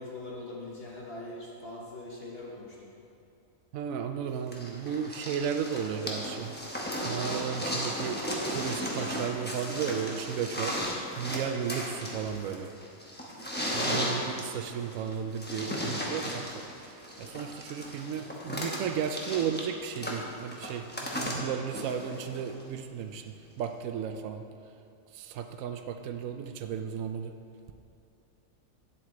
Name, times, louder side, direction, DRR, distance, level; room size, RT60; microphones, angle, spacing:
voice 1, 0.0-2.9 13.8-14.3, left 2 dB, 50° left, -4 dB, 1.1 m, -42 dB
voice 2, 3.7-6.5 7.0-8.2 8.5-10.7 11.2-12.7 13.7-16.7 17.2-24.4 25.1-27.3, right 7 dB, 75° right, 6 dB, 0.9 m, -34 dB
sound 1, 4.5-22.6 23.6-23.7, equal, 10° left, 0.9 m, -35 dB
8.9 x 7.6 x 3.8 m, 2.7 s
omnidirectional pair, 1.5 m